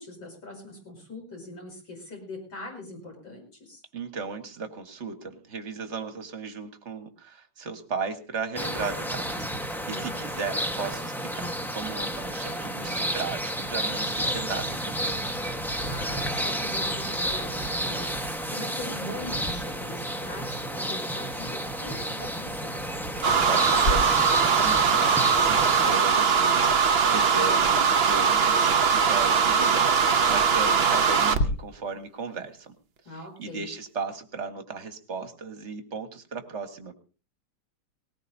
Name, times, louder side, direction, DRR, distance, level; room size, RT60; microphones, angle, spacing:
voice 1, 0.0-3.8 9.9-10.3 15.8-22.7 33.0-33.7, left 2 dB, 60° left, 1 dB, 6.7 m, -41 dB
voice 2, 3.9-11.5 11.7-15.4 18.9-19.4 23.2-24.2 24.5-32.7 33.4-36.9, right 4 dB, 35° right, 7 dB, 1.7 m, -36 dB
sound 1, 8.5-25.9, equal, ahead, 0.8 m, -31 dB
sound 2, 23.2-31.5, right 6 dB, 70° right, 0.5 m, -21 dB
Clock, 23.7-31.4, left 1 dB, 40° left, 1.2 m, -37 dB
19.5 x 19.0 x 2.7 m, 0.36 s
omnidirectional pair, 2.4 m